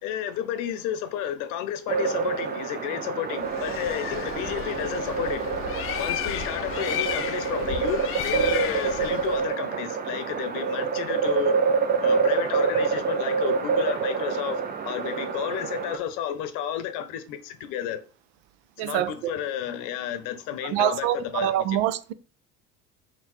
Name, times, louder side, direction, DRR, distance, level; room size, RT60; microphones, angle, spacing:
voice 1, 0.0-5.5 6.0-11.6 12.0-18.0 18.8-21.8, left 10 dB, 75° left, 0.8 m, -32 dB
sound 1, 1.9-16.0, right 5 dB, 30° right, 0.5 m, -27 dB
Bird, 3.4-9.5, left 10 dB, 45° left, 0.5 m, -33 dB
voice 2, 18.8-19.3 20.6-22.1, right 12 dB, 80° right, 0.5 m, -25 dB
3.8 x 2.3 x 4.4 m
supercardioid pair, 90°, 32 cm